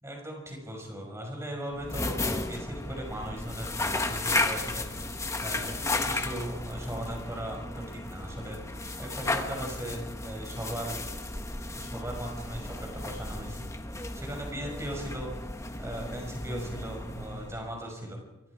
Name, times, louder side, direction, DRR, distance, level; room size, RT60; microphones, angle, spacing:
voice 1, 0.0-5.1 5.4-11.0 11.7-13.7 14.1-15.3 15.8-18.2, right 1 dB, 15° right, 1 dB, 6.0 m, -38 dB
sound 1, 1.7-17.9, left 2 dB, 15° left, 1.4 m, -34 dB
27.0 x 22.5 x 5.0 m, 1.1 s
head